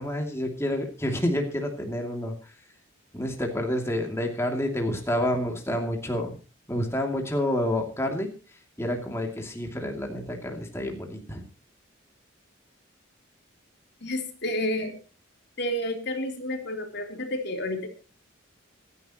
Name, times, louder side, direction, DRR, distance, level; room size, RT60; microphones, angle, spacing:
voice 1, 0.0-2.5 3.1-6.4 6.7-11.4, left 1 dB, 10° left, 2 dB, 2.6 m, -29 dB
voice 2, 14.0-15.0 15.6-17.9, left 1 dB, 50° left, 4 dB, 3.4 m, -30 dB
27.0 x 11.0 x 3.0 m, 0.34 s
head